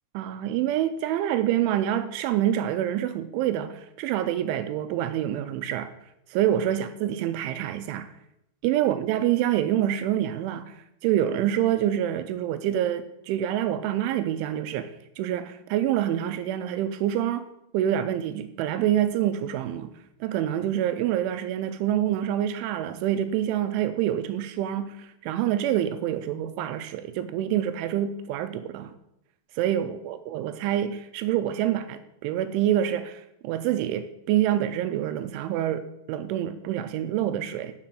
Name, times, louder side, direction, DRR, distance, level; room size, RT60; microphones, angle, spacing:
voice 1, 0.1-5.9 6.3-8.1 8.6-10.7 11.0-14.9 15.2-17.4 17.7-19.9 20.2-29.0 29.6-37.7, right 11 dB, 85° right, 2.8 m, -26 dB
10.5 x 5.9 x 7.5 m
omnidirectional pair, 6.0 m